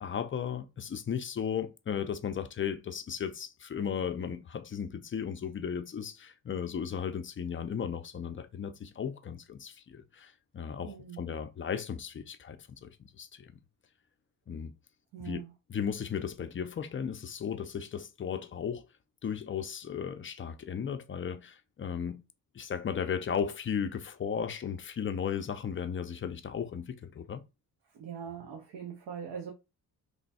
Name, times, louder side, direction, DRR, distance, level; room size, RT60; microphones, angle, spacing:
voice 1, 0.0-13.5 14.5-14.7 15.2-15.4 15.7-18.8 19.2-22.2 22.5-27.4, left 7 dB, 30° left, 0.5 m, -35 dB
voice 2, 10.8-11.2 15.1-15.5 27.9-29.5, right 7 dB, 75° right, 1.0 m, -41 dB
3.0 x 2.2 x 4.0 m
cardioid pair, 90°, 41 cm